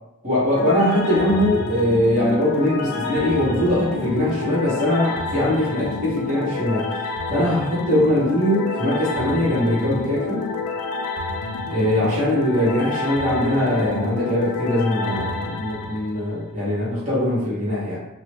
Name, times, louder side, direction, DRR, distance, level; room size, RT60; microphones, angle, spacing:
voice 1, 0.2-6.9 7.3-10.5 11.7-18.0, left 1 dB, 35° right, -9 dB, 1.2 m, -21 dB
sound 1, 0.5-16.6, left 3 dB, 70° left, 0.4 m, -29 dB
2.9 x 2.0 x 3.1 m, 0.91 s
head